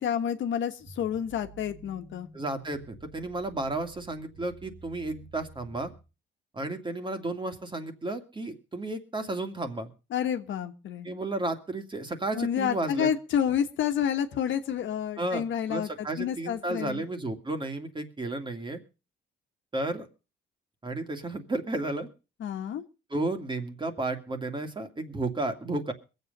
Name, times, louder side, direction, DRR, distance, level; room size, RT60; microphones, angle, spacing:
voice 1, 0.0-2.3 10.1-11.1 12.3-17.0 22.4-22.8, left 9 dB, 70° left, 7 dB, 1.4 m, -29 dB
sound 1, 0.8-6.0, right 3 dB, 85° right, 5.0 m, -51 dB
voice 2, 2.3-5.9 6.5-9.9 11.0-13.1 15.2-15.4 15.7-18.8 19.7-20.1 20.8-22.1 23.1-25.9, right 2 dB, 25° right, 6 dB, 2.4 m, -32 dB
22.0 x 8.1 x 5.4 m, 0.33 s
cardioid pair, 90°, 20 cm